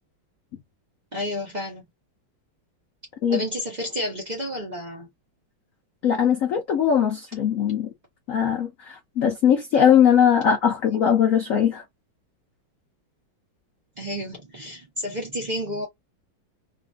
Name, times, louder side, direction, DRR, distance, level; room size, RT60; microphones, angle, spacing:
voice 1, 1.1-1.8 3.3-5.1 14.0-15.9, left 1 dB, 60° right, 0.4 m, -31 dB
voice 2, 6.0-7.9 8.3-11.8, left 8 dB, 70° left, 0.7 m, -20 dB
3.2 x 2.6 x 2.3 m
omnidirectional pair, 2.3 m